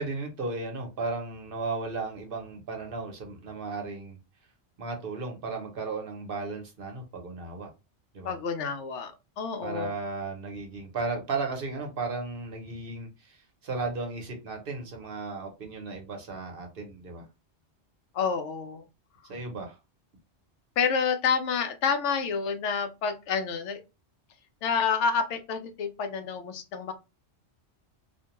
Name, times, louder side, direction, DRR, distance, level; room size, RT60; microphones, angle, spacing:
voice 1, 0.0-4.2 4.8-7.7 8.1-8.3 9.6-17.3 19.3-19.8, right 3 dB, 55° right, 2 dB, 0.9 m, -35 dB
voice 2, 8.2-9.9 18.1-18.8 20.8-23.8 24.6-26.9, left 6 dB, 90° left, 7 dB, 0.9 m, -28 dB
2.5 x 2.2 x 2.8 m, 0.26 s
omnidirectional pair, 1.2 m